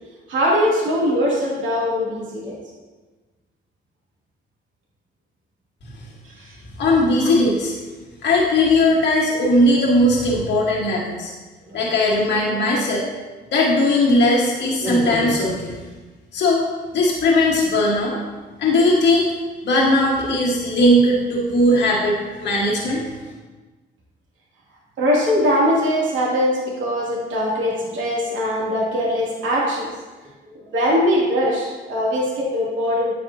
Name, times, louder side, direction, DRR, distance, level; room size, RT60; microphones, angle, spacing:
voice 1, 0.3-2.6 6.2-6.6 7.2-7.3 11.7-11.8 14.8-15.3 25.0-29.9 30.4-33.1, equal, 70° right, -5 dB, 2.7 m, -21 dB
voice 2, 6.7-7.7 8.2-11.3 11.7-13.0 13.5-15.8 16.3-16.6 16.9-18.2 18.6-19.3 19.6-23.0, left 1 dB, 65° left, -4 dB, 1.5 m, -18 dB
8.7 x 7.8 x 2.8 m, 1.3 s
cardioid pair, 90°, 20 cm